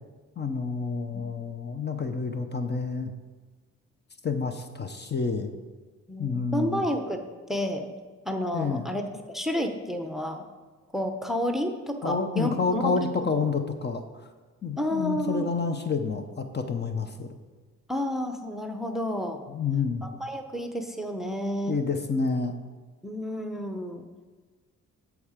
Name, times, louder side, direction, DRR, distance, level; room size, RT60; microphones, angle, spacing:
voice 1, 0.4-3.1 4.2-5.5 6.2-6.8 8.5-8.9 12.0-14.3 14.6-17.3 19.5-20.0 21.7-22.5, left 4 dB, 35° left, 7 dB, 0.8 m, -29 dB
voice 2, 6.1-7.2 7.5-7.9 8.2-9.0 9.3-10.4 10.9-13.1 14.8-15.5 17.9-19.4 20.0-21.8 23.0-24.1, equal, ahead, 6 dB, 0.8 m, -30 dB
13.0 x 4.8 x 5.0 m, 1.3 s
cardioid pair, 90°, 30 cm